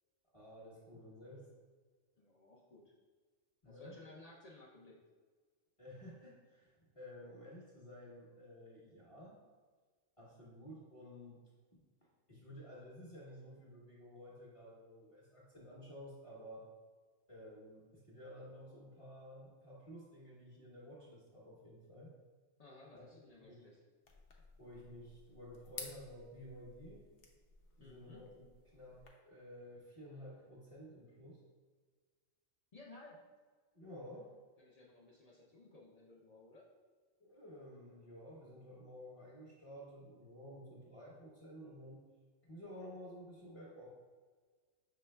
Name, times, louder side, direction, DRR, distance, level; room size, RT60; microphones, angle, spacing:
voice 1, 0.3-1.5 3.6-4.0 5.8-9.4 10.2-11.4 11.7-11.8 12.3-16.6 17.3-22.1 22.9-23.0 23.4-23.7 24.6-27.1 27.8-28.5 28.7-31.4 33.7-34.3 37.2-42.0 42.4-43.9, equal, 30° left, -6 dB, 0.9 m, -53 dB
voice 2, 2.2-2.9 3.6-5.0 22.6-23.8 27.8-28.2 32.7-33.2 34.6-36.7, left 2 dB, 50° left, -3 dB, 0.4 m, -58 dB
sound 1, 24.0-29.1, left 4 dB, 65° left, 0.9 m, -54 dB
5.9 x 3.3 x 2.2 m, 1.5 s
omnidirectional pair, 1.4 m